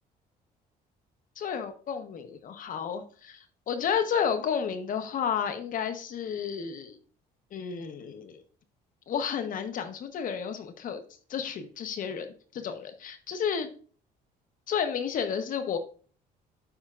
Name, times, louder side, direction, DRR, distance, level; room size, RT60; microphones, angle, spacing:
voice 1, 1.4-7.0 7.5-8.4 9.1-11.0 11.3-13.7 14.7-15.8, left 7 dB, 55° left, 9 dB, 1.0 m, -31 dB
12.0 x 4.4 x 2.5 m, 0.41 s
cardioid pair, 110°, 17 cm